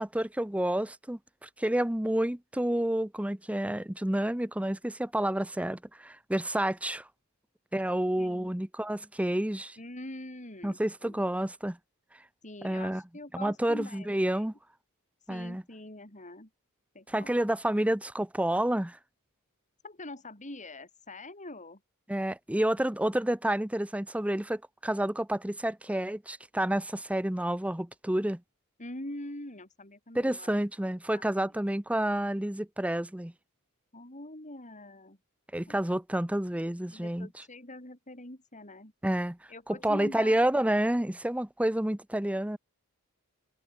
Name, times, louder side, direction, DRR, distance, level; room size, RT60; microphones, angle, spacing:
voice 1, 0.0-7.0 7.7-9.8 10.6-11.8 12.6-13.0 13.3-14.5 15.3-15.6 17.1-19.0 22.1-28.4 30.1-33.3 35.5-37.3 39.0-39.4 39.7-42.6, right 1 dB, 5° right, 0.7 m, -29 dB
voice 2, 8.2-8.5 9.8-11.2 12.4-14.5 15.2-16.5 16.9-17.4 19.8-21.8 28.8-30.5 31.1-31.2 33.9-35.2 35.7-35.8 36.9-38.9 39.5-40.4, left 1 dB, 35° left, 7.9 m, -44 dB
head